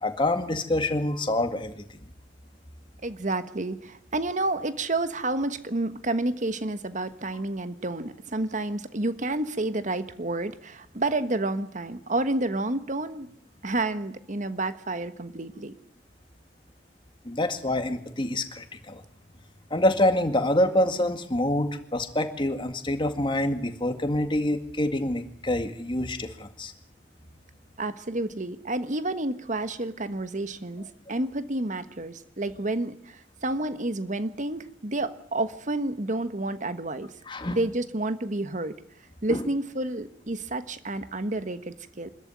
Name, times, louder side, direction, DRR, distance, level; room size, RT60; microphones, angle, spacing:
voice 1, 0.0-1.9 17.3-19.0 19.7-26.7 37.3-37.6 39.3-39.4, left 1 dB, 30° left, 7 dB, 2.1 m, -26 dB
voice 2, 3.0-13.3 13.6-15.7 27.8-37.1 37.5-38.7 39.2-42.1, right 2 dB, 45° right, 11 dB, 1.3 m, -30 dB
25.0 x 14.0 x 9.7 m, 0.69 s
head